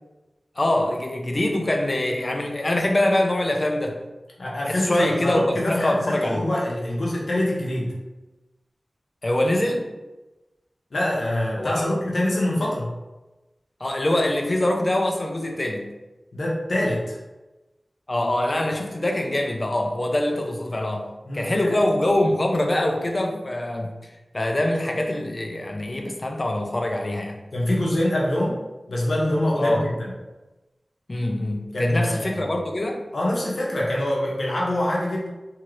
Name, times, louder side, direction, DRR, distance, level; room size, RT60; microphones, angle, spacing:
voice 1, 0.6-4.0 4.6-6.5 9.2-9.9 11.6-11.9 13.8-15.9 18.1-21.1 21.3-27.4 29.6-29.9 31.1-33.0, left 1 dB, 40° left, 3 dB, 0.4 m, -24 dB
voice 2, 4.4-7.9 10.9-12.9 16.3-17.2 21.2-21.5 27.5-28.6 28.9-30.1 31.7-32.4 33.1-35.3, left 1 dB, 85° left, -4 dB, 0.7 m, -24 dB
2.8 x 2.4 x 3.1 m, 1.1 s
wide cardioid pair, 80°, 0 cm